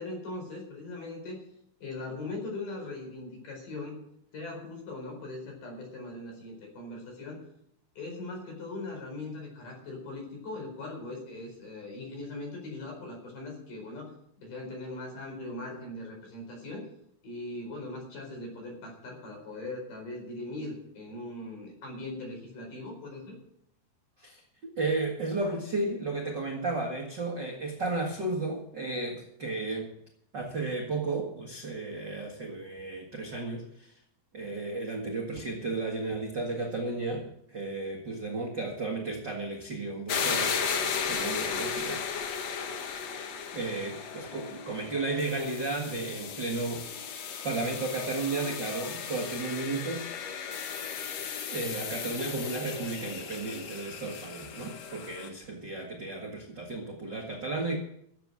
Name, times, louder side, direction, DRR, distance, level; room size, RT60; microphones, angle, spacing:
voice 1, 0.0-1.4 1.8-4.0 4.3-7.4 8.0-14.1 14.4-16.8 17.2-23.4, left 2 dB, 50° left, 1 dB, 6.0 m, -40 dB
voice 2, 24.8-29.9 30.3-33.9 34.3-40.6 41.1-42.0 43.5-46.9 47.4-50.1 51.5-57.8, right 3 dB, 55° right, 0 dB, 1.2 m, -33 dB
sound 1, 40.1-55.3, left 6 dB, 80° left, 1.5 m, -35 dB
14.5 x 8.0 x 7.5 m, 0.73 s
omnidirectional pair, 4.8 m